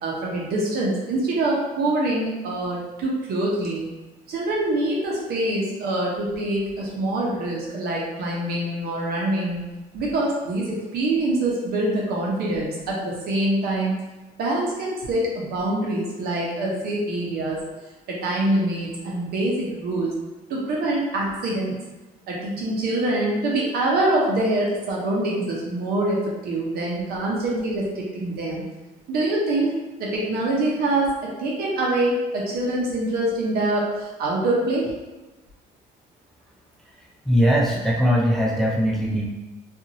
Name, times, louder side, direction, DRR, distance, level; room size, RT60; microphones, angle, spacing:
voice 1, 0.0-3.9 4.3-9.6 9.9-13.9 14.4-17.6 18.1-20.1 20.5-21.8 22.3-28.6 29.1-29.7 30.0-34.9, right 1 dB, 65° right, -3 dB, 0.9 m, -25 dB
voice 2, 37.3-39.3, equal, ahead, -3 dB, 0.4 m, -20 dB
2.5 x 2.5 x 2.9 m, 1.1 s
cardioid pair, 110°, 17 cm